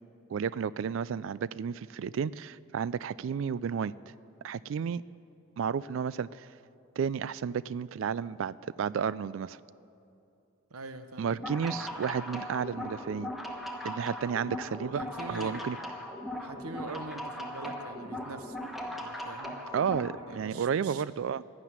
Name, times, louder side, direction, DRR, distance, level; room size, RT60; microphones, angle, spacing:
voice 1, 0.3-3.9 4.4-5.0 5.6-6.5 7.0-9.6 11.2-13.3 13.8-15.0 15.3-15.8 19.7-21.4, right 7 dB, 60° right, 19 dB, 0.3 m, -32 dB
voice 2, 10.7-11.4 14.8-15.7 16.4-18.6 18.9-19.6 20.2-21.0, right 3 dB, 85° right, 10 dB, 0.9 m, -44 dB
sound 1, 11.3-20.2, left 1 dB, ahead, 1.1 m, -39 dB
12.0 x 11.5 x 9.4 m, 2.7 s
head